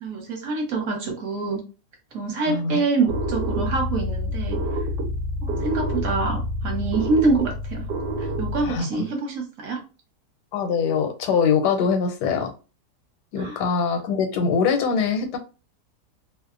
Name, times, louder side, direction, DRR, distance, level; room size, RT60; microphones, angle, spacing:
voice 1, 0.0-1.6 2.1-4.6 5.4-7.9 8.2-9.8 13.4-13.6, right 3 dB, 55° right, 1.2 m, -25 dB
voice 2, 2.5-2.8 8.6-8.9 10.5-12.5 13.3-15.4, left 5 dB, 80° left, 1.2 m, -23 dB
sound 1, 3.1-8.8, equal, 85° right, 1.2 m, -27 dB
2.8 x 2.0 x 2.4 m
omnidirectional pair, 1.8 m